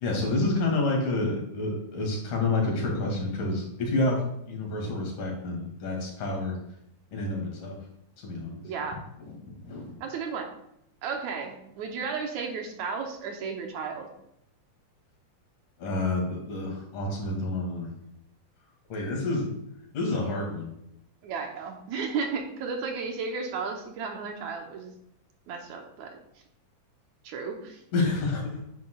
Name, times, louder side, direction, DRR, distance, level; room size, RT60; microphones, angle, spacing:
voice 1, 0.0-6.6 7.1-7.8 8.2-8.6 9.3-9.4 9.6-9.9 15.8-17.9 18.9-19.5 19.9-20.7 27.9-28.6, left 2 dB, 75° left, -1 dB, 3.9 m, -29 dB
voice 2, 8.6-9.0 10.0-10.5 11.0-14.1 21.2-24.9 25.5-26.2 27.2-27.8, right 5 dB, 70° right, 3 dB, 2.1 m, -34 dB
9.5 x 9.2 x 2.3 m, 0.77 s
omnidirectional pair, 3.7 m